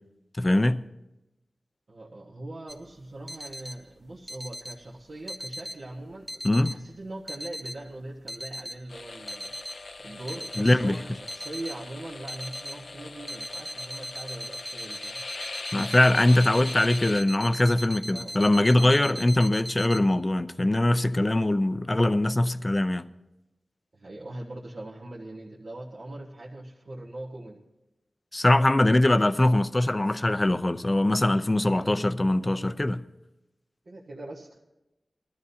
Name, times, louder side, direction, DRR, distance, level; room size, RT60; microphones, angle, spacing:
voice 1, 0.4-0.8 6.4-6.8 10.6-11.0 15.7-23.0 28.3-33.0, left 1 dB, 25° left, 0.5 m, -22 dB
voice 2, 1.9-15.2 18.1-18.3 18.9-19.3 23.9-27.6 31.6-32.2 33.8-34.6, right 1 dB, 60° right, 1.5 m, -41 dB
sound 1, 2.7-20.0, equal, 10° right, 1.4 m, -39 dB
sound 2, 8.9-17.2, left 3 dB, 70° left, 0.6 m, -41 dB
21.5 x 13.5 x 2.8 m
wide cardioid pair, 75°, 0 cm